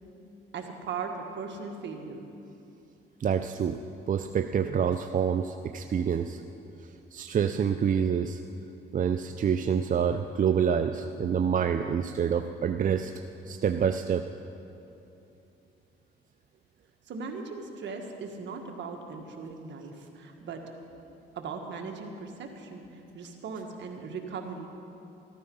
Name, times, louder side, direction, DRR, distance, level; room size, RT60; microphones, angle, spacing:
voice 1, 0.5-2.3 17.1-20.7 21.3-24.7, right 5 dB, 65° right, 3 dB, 1.7 m, -38 dB
voice 2, 3.2-3.8 4.1-6.4 7.1-8.4 8.9-13.1 13.5-14.3, right 7 dB, 40° right, 7 dB, 0.5 m, -27 dB
13.5 x 13.5 x 5.5 m, 2.8 s
cardioid pair, 90°, 20 cm